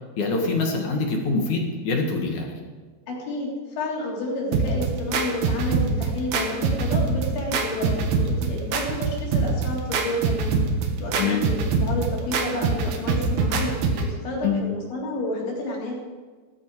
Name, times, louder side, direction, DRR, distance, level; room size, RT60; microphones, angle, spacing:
voice 1, 0.2-2.5 11.1-11.5 14.4-14.6, left 4 dB, 50° left, 1 dB, 2.8 m, -24 dB
voice 2, 3.1-10.6 11.0-15.9, left 1 dB, 90° left, -4 dB, 6.1 m, -30 dB
sound 1, 4.5-14.1, right 4 dB, 65° right, 3.0 m, -24 dB
16.5 x 14.0 x 4.9 m, 1.4 s
omnidirectional pair, 5.1 m